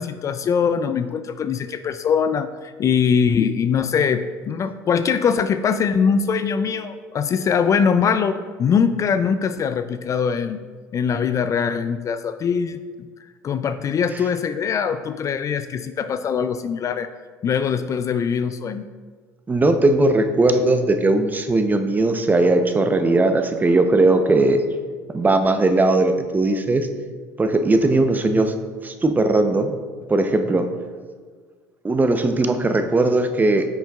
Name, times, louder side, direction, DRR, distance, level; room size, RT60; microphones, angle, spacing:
voice 1, 0.0-10.6 10.9-13.1 13.4-17.1 17.4-18.8 28.2-28.3, left 6 dB, 40° left, 11 dB, 0.3 m, -22 dB
voice 2, 19.5-24.6 25.1-26.9 27.4-28.5 28.8-29.7 30.1-30.7 31.8-33.7, right 2 dB, 20° right, 7 dB, 0.6 m, -18 dB
10.0 x 6.2 x 2.3 m, 1.5 s
supercardioid pair, 90°, 9 cm